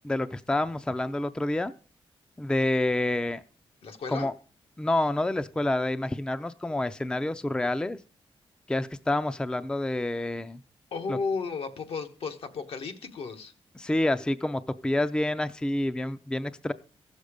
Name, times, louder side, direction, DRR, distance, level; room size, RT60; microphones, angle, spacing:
voice 1, 0.0-1.7 2.4-3.4 4.1-4.3 4.8-8.0 8.7-10.6 11.1-11.2 13.8-16.7, left 1 dB, 10° left, 0.4 m, -28 dB
voice 2, 3.8-4.3 10.9-13.5, left 4 dB, 75° left, 1.2 m, -33 dB
15.5 x 6.6 x 5.0 m
wide cardioid pair, 120°, 10 cm